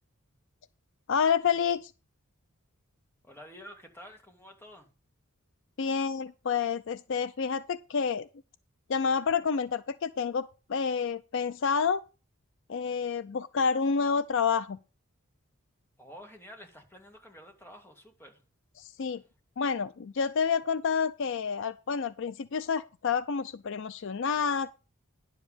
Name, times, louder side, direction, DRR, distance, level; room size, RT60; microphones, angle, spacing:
voice 1, 1.1-1.9 5.8-8.3 8.9-12.0 12.7-14.8 18.8-19.2 19.6-24.7, left 6 dB, 60° left, 0.4 m, -29 dB
voice 2, 3.2-4.9 16.0-18.4, equal, 10° left, 2.0 m, -50 dB
10.5 x 7.3 x 5.0 m
head